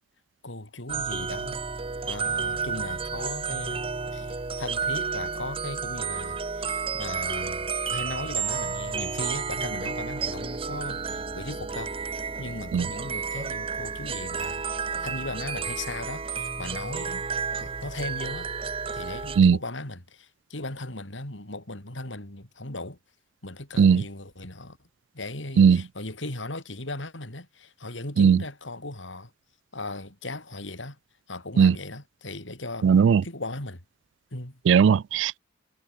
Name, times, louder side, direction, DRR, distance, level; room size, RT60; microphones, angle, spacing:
voice 1, 0.4-1.6 2.0-3.9 4.1-11.9 12.4-14.7 15.0-17.3 17.6-18.5 18.9-23.0 23.4-24.8 25.1-29.3 29.7-31.0 31.3-32.9 33.2-33.8 34.3-34.6, left 2 dB, 90° left, 4.9 m, -37 dB
sound 1, 0.9-19.4, right 5 dB, 30° right, 0.7 m, -31 dB
voice 2, 32.8-33.2 34.7-35.4, right 6 dB, 80° right, 0.3 m, -17 dB
head